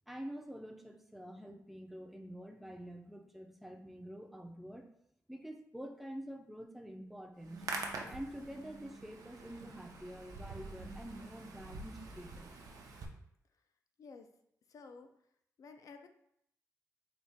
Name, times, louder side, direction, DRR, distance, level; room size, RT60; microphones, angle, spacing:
voice 1, 0.1-4.9 5.3-7.7 8.1-12.5, equal, ahead, 3 dB, 0.4 m, -47 dB
Hands, 7.4-13.1, right 3 dB, 85° right, 0.5 m, -46 dB
voice 2, 14.0-14.3 14.7-15.1 15.6-16.1, left 4 dB, 70° left, 7 dB, 0.4 m, -52 dB
3.9 x 2.3 x 3.4 m, 0.73 s
wide cardioid pair, 140°, 6 cm